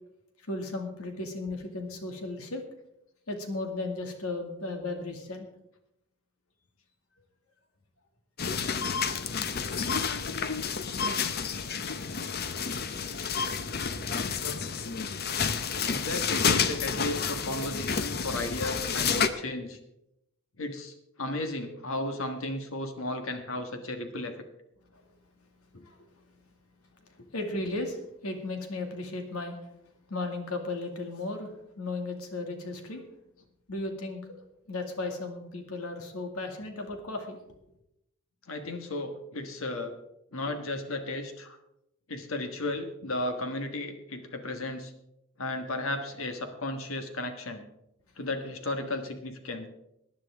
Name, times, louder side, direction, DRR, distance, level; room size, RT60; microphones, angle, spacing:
voice 1, 0.4-2.6 3.3-5.5 8.9-9.2 9.7-9.9 24.9-25.0 25.8-26.1 27.0-29.7 30.1-33.0 33.7-34.2 34.7-37.4, left 2 dB, 85° left, 4 dB, 2.2 m, -35 dB
sound 1, 8.4-19.3, left 6 dB, 45° left, 0.7 m, -30 dB
voice 2, 15.8-19.8 20.6-24.4 25.7-25.8 38.5-39.9 40.3-41.6 42.1-44.9 45.4-47.6 48.2-49.7, left 2 dB, 65° left, 6 dB, 1.5 m, -34 dB
19.0 x 10.5 x 3.6 m, 0.83 s
head